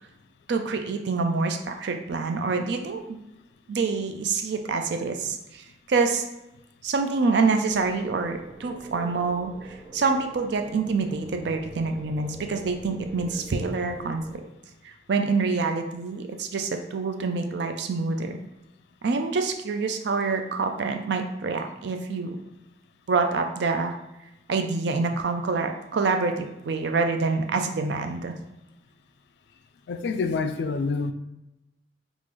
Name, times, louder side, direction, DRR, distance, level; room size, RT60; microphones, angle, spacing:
voice 1, 0.5-3.2 3.7-6.2 6.8-14.4 14.8-18.4 19.0-22.4 23.1-24.0 24.5-28.4, right 4 dB, 70° right, 5 dB, 0.4 m, -26 dB
sound 1, 7.6-14.4, right 1 dB, 15° right, 0.7 m, -45 dB
voice 2, 29.9-31.1, left 4 dB, 65° left, 8 dB, 0.3 m, -27 dB
3.6 x 2.5 x 3.1 m, 0.93 s
head